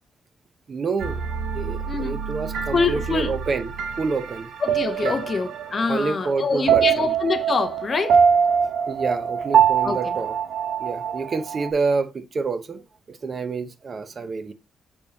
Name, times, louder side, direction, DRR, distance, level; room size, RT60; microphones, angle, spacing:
voice 1, 0.7-1.2 1.5-3.7 4.0-4.5 5.0-5.2 5.9-7.1 8.9-10.4 10.8-14.5, right 4 dB, 35° right, 0.7 m, -28 dB
sound 1, 1.0-11.7, right 7 dB, 80° right, 1.0 m, -24 dB
voice 2, 1.9-2.2 2.7-3.4 4.6-8.3 9.8-10.1, left 4 dB, 30° left, 0.6 m, -25 dB
6.6 x 5.2 x 2.7 m
wide cardioid pair, 175°, 0 cm